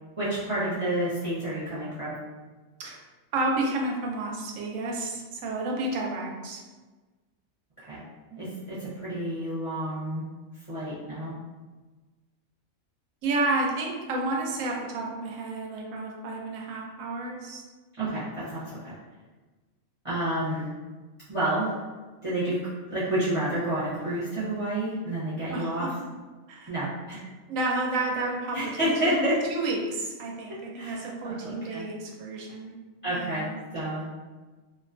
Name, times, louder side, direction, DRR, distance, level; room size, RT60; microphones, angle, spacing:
voice 1, 0.2-2.2 7.8-8.0 8.3-10.2 10.7-11.3 18.0-18.9 20.0-20.7 21.3-21.8 22.2-22.6 22.9-25.9 26.7-27.2 28.5-29.4 30.5-31.8 33.0-33.5 33.7-34.0, right 1 dB, 30° right, -10 dB, 0.6 m, -29 dB
voice 2, 3.3-6.6 13.2-17.6 25.5-25.9 26.5-26.7 27.5-29.2 29.5-32.8 33.1-33.6, right 2 dB, 75° right, 0 dB, 0.9 m, -31 dB
2.5 x 2.2 x 2.4 m, 1.3 s
omnidirectional pair, 1.5 m